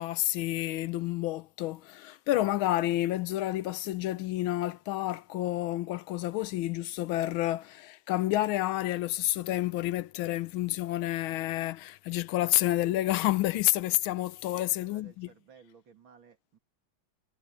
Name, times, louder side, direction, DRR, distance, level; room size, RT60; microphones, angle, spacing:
voice 1, 0.0-15.3, left 15 dB, 90° left, 1.5 m, -29 dB
voice 2, 14.5-16.6, right 6 dB, 75° right, 3.3 m, -57 dB
omnidirectional pair, 2.2 m